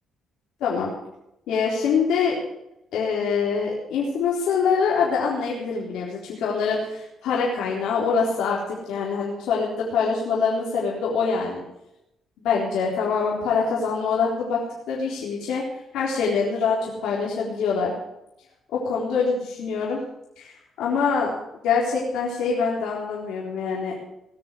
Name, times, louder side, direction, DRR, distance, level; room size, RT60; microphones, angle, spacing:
voice 1, 0.6-0.9 1.5-2.4 2.9-11.6 12.4-14.6 14.9-15.6 15.9-17.9 18.7-20.0 20.4-21.3 21.6-23.9, left 5 dB, 85° left, -4 dB, 3.9 m, -24 dB
19.5 x 6.9 x 9.9 m, 0.85 s
cardioid pair, 90°, 0 cm